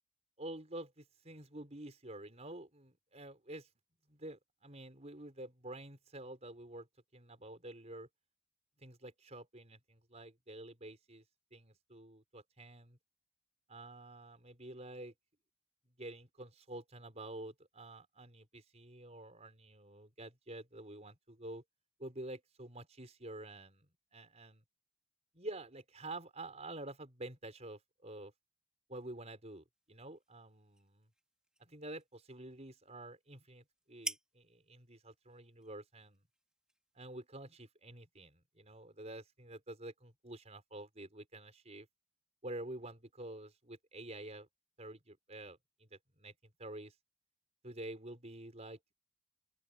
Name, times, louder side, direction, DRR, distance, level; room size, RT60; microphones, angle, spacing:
voice 1, 0.4-3.7 4.1-6.9 7.1-8.1 8.8-11.2 11.5-13.0 13.7-15.1 16.0-21.6 22.0-23.9 24.1-24.6 25.3-28.3 28.9-31.1 31.6-36.2 36.9-41.9 42.4-44.5 44.8-46.3 46.6-46.9 47.6-48.8, right 1 dB, 30° right, 5.2 m, -49 dB
sound 1, 29.7-37.4, right 1 dB, 5° right, 3.7 m, -52 dB
open air
head